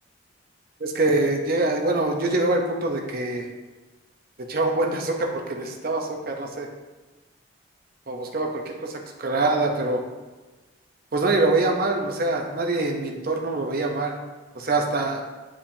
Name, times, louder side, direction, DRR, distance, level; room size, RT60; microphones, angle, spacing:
voice 1, 0.8-3.5 4.4-6.7 8.1-10.0 11.1-14.1 14.5-15.2, right 2 dB, 50° right, 2 dB, 0.8 m, -24 dB
8.7 x 4.9 x 2.8 m, 1.2 s
head